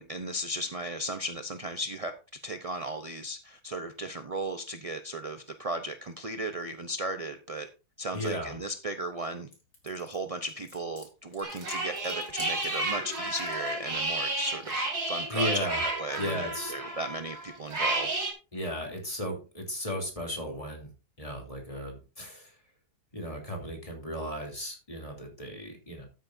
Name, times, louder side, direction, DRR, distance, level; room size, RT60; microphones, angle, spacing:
voice 1, 0.0-2.1 2.4-7.7 8.0-9.5 9.8-18.3, right 1 dB, 40° right, 7 dB, 0.5 m, -36 dB
voice 2, 8.1-8.6 15.3-15.8 16.2-16.7 18.5-20.9 21.2-22.5 23.1-26.1, equal, 20° left, 1 dB, 3.1 m, -35 dB
sound 1, 9.5-13.7, left 2 dB, 65° left, 4.3 m, -50 dB
sound 2, 11.4-18.3, right 2 dB, 65° right, 3.4 m, -32 dB
13.0 x 9.4 x 2.7 m, 0.31 s
omnidirectional pair, 1.8 m